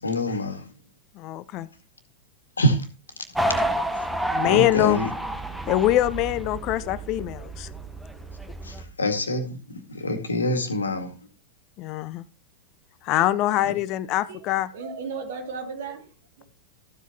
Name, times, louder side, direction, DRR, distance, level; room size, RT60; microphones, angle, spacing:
voice 1, 0.0-0.7 2.6-2.9 3.2-3.3 4.4-5.1 8.6-11.2 13.7-13.8, equal, 75° left, 2.0 m, -26 dB
voice 2, 1.1-1.7 4.3-5.0 5.7-7.7 11.8-12.2 13.0-14.7, left 14 dB, 40° left, 0.7 m, -24 dB
sound 1, 3.3-8.8, right 1 dB, 5° right, 1.3 m, -30 dB
voice 3, 14.7-16.4, right 5 dB, 55° right, 2.7 m, -35 dB
14.0 x 8.1 x 2.9 m
figure-of-eight pair, 90°, 0 cm